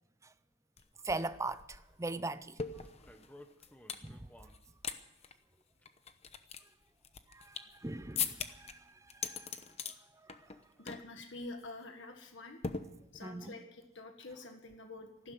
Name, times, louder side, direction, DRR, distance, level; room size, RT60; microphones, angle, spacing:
sound 1, 0.8-0.9 1.1-4.1 4.5-5.0 5.2-5.3 5.9-7.8 8.2-8.7 9.1-10.0 10.3-10.6 10.9-11.1 11.4-11.7 12.6-13.4, left 6 dB, 30° left, 0.9 m, -40 dB
voice 1, 1.0-2.6 4.0-4.2 7.3-9.5 13.2-13.5, right 2 dB, 15° right, 0.5 m, -40 dB
sound 2, 2.8-4.6 5.3-6.1 7.0-7.1 7.8-8.5 8.9-9.1 9.5-9.6 10.0-10.3 10.6-11.0 11.5-11.6, left 1 dB, 5° left, 1.0 m, -58 dB
voice 2, 10.8-12.6 13.1-15.3, left 2 dB, 60° left, 1.7 m, -47 dB
15.0 x 12.0 x 7.7 m
head